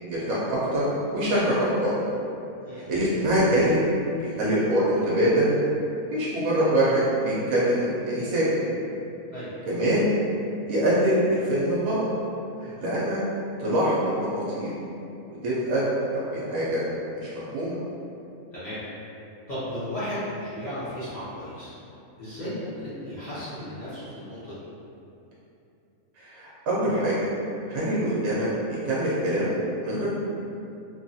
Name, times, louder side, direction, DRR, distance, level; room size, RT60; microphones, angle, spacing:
voice 1, 0.1-0.8 1.1-1.9 2.7-3.8 4.2-5.5 6.1-8.5 9.7-10.1 10.7-12.1 12.6-13.2 13.6-14.7 15.4-16.8 17.1-17.8 26.2-27.3 27.7-30.1, right 1 dB, 70° right, -8 dB, 1.0 m, -24 dB
voice 2, 19.5-21.7 22.2-24.6, equal, 40° left, -14 dB, 0.7 m, -34 dB
3.1 x 2.3 x 2.6 m, 2.7 s
omnidirectional pair, 1.6 m